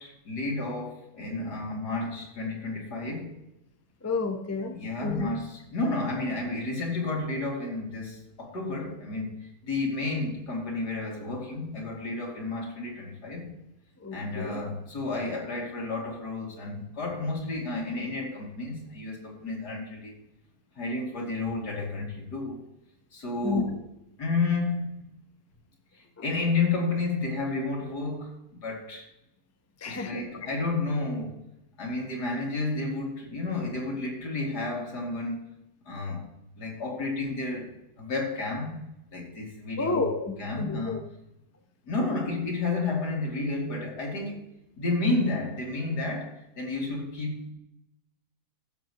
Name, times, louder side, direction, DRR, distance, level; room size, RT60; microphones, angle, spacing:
voice 1, 0.0-3.4 4.7-13.5 14.1-20.2 20.8-22.6 23.1-23.7 24.2-25.1 25.9-28.4 28.6-29.1 29.8-31.4 31.8-35.5 35.9-36.3 36.6-38.8 39.1-40.0 40.4-41.0 41.9-44.5 44.8-47.5, left 3 dB, 85° left, -1 dB, 3.2 m, -31 dB
voice 2, 4.0-4.7 5.0-5.3 14.0-14.6 23.4-23.6 29.8-30.3 39.8-41.0, left 3 dB, 15° left, 6 dB, 0.7 m, -30 dB
16.5 x 7.4 x 3.0 m, 0.88 s
omnidirectional pair, 1.7 m